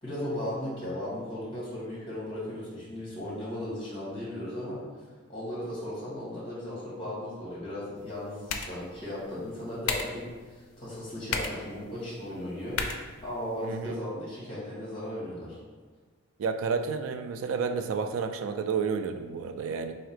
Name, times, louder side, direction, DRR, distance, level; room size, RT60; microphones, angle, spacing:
voice 1, 0.0-4.8 5.3-12.8 13.2-15.6, left 1 dB, 25° left, -8 dB, 1.5 m, -36 dB
sound 1, 8.0-14.0, left 5 dB, 85° left, 0.4 m, -38 dB
voice 2, 13.6-14.0 16.4-19.9, right 5 dB, 75° right, 7 dB, 0.3 m, -30 dB
3.8 x 2.8 x 3.3 m, 1.4 s
head